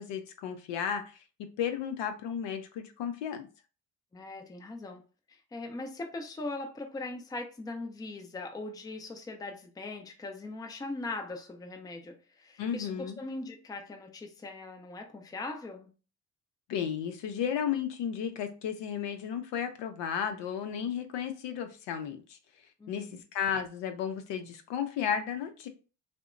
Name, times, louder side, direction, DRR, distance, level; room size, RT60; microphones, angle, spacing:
voice 1, 0.0-3.5 12.6-13.2 16.7-22.4 22.9-25.7, left 8 dB, 65° left, 0.6 m, -34 dB
voice 2, 4.1-5.0 5.3-15.9 22.8-23.2, left 2 dB, 10° left, 0.5 m, -40 dB
2.7 x 2.1 x 2.4 m
hypercardioid pair, 55°, 46 cm